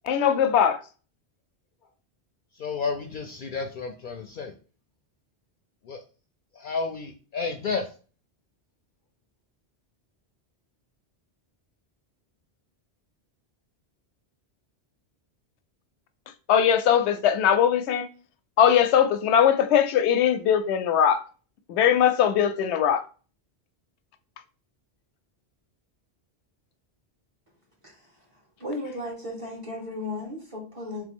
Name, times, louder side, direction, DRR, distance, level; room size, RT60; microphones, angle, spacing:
voice 1, 0.1-0.8 16.5-18.1 18.6-21.2 21.7-23.0, left 9 dB, 85° left, 0.9 m, -20 dB
voice 2, 2.6-4.5 5.9-6.0 6.6-7.9, left 4 dB, 60° left, 0.6 m, -31 dB
voice 3, 27.8-28.2 28.6-31.0, left 2 dB, 30° right, 1.5 m, -35 dB
3.7 x 3.2 x 3.5 m
omnidirectional pair, 1.1 m